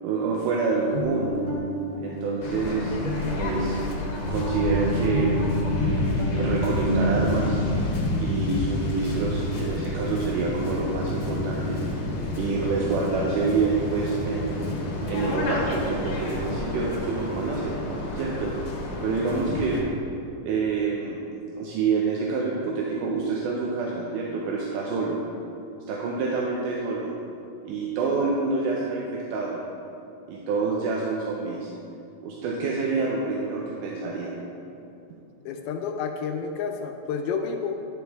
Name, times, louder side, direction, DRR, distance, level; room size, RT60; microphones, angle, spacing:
voice 1, 0.0-1.3 2.0-2.9 3.4-3.7 4.3-5.3 5.7-7.6 8.1-11.8 12.4-14.7 15.1-17.8 18.1-18.7 19.0-19.8 20.4-21.2 21.6-25.2 25.9-27.1 27.7-29.6 30.3-31.7 32.2-34.4, right 4 dB, 75° right, -3 dB, 2.0 m, -27 dB
sound 1, 0.7-7.6, left 1 dB, 55° right, 0.3 m, -30 dB
Waves surf, 2.4-19.8, left 1 dB, 65° left, 1.9 m, -29 dB
voice 2, 35.5-37.9, left 5 dB, 85° left, 4 dB, 2.5 m, -30 dB
11.5 x 5.3 x 3.4 m, 2.7 s
omnidirectional pair, 4.2 m